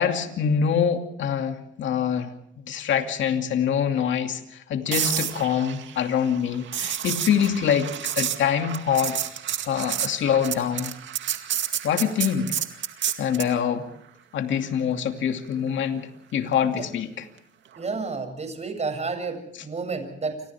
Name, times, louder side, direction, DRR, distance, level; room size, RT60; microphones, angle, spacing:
voice 1, 0.0-2.3 2.7-7.9 8.2-9.2 9.7-10.9 11.8-12.5 13.2-13.9 14.3-17.3, left 8 dB, 70° left, 5 dB, 2.6 m, -25 dB
sound 1, 4.9-13.6 17.8-18.0, right 10 dB, 70° right, 2.1 m, -30 dB
voice 2, 17.8-20.4, right 4 dB, 35° right, 7 dB, 7.5 m, -31 dB
29.0 x 26.5 x 3.6 m, 0.74 s
cardioid pair, 90°, 20 cm